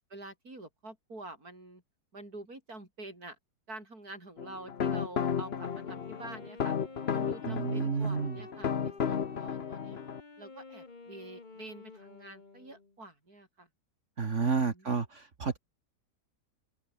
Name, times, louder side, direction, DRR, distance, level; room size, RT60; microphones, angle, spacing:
voice 1, 0.1-1.8 2.1-3.4 3.7-6.8 7.1-10.0 10.4-13.7 14.7-15.0, right 2 dB, 65° right, 7.8 m, -47 dB
sound 1, 4.4-10.2, left 7 dB, 45° left, 1.1 m, -33 dB
Wind instrument woodwind instrument, 5.3-13.0, left 3 dB, 30° left, 1.8 m, -50 dB
voice 2, 7.5-8.4 14.2-15.6, right 5 dB, 50° right, 2.0 m, -30 dB
open air
omnidirectional pair, 1.7 m